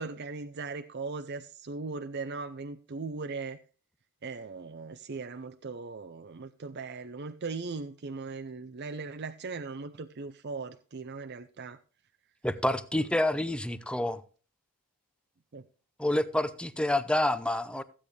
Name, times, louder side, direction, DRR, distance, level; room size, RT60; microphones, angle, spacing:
voice 1, 0.0-3.6 4.2-11.8 15.5-15.6, right 4 dB, 50° right, 0.6 m, -39 dB
voice 2, 12.4-14.2 16.0-17.8, left 1 dB, 5° left, 0.6 m, -28 dB
15.0 x 8.7 x 3.3 m
head